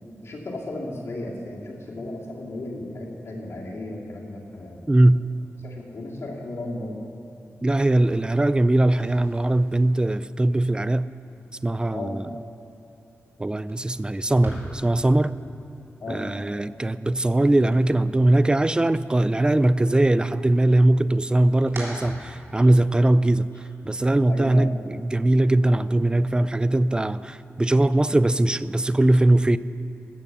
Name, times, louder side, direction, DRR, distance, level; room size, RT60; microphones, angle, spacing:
voice 1, 0.2-4.9 5.6-7.0 11.9-12.2 16.0-16.3 22.0-22.2 22.6-22.7 24.3-24.7, left 2 dB, 60° left, -2 dB, 2.4 m, -35 dB
voice 2, 4.9-5.2 7.6-11.1 11.6-12.3 13.4-15.3 16.1-23.5 23.8-29.6, right 1 dB, 15° right, 15 dB, 0.3 m, -20 dB
sound 1, 8.9-18.8 19.1-19.9 20.3-22.9, right 1 dB, 50° right, 3.2 m, -44 dB
15.0 x 6.7 x 6.9 m, 2.9 s
cardioid pair, 70°, 5 cm